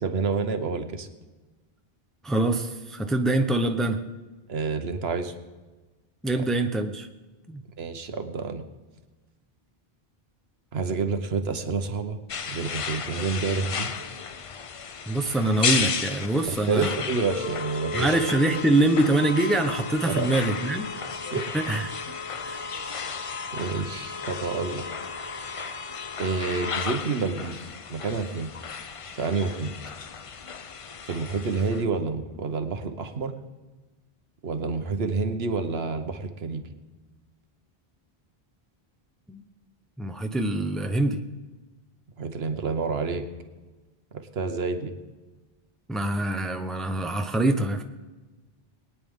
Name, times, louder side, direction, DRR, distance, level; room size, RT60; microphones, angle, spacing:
voice 1, 0.0-1.1 4.5-5.3 7.8-8.6 10.7-12.2 12.5-13.9 16.5-18.2 20.1-20.3 21.3-21.5 22.1-22.2 23.5-24.9 26.2-27.6 27.9-28.5 29.2-29.7 31.0-33.3 34.4-36.6 42.2-43.2 44.1-44.9, right 4 dB, 80° right, 8 dB, 1.2 m, -28 dB
voice 2, 2.2-4.0 6.2-7.1 7.5-7.6 15.1-16.9 17.9-20.9 21.5-21.9 22.4-22.6 39.3-39.4 40.0-41.2 45.9-47.8, right 2 dB, ahead, 5 dB, 0.7 m, -24 dB
sound 1, 12.3-31.8, left 5 dB, 45° left, 0.5 m, -33 dB
21.5 x 9.5 x 3.6 m, 1.2 s
omnidirectional pair, 1.0 m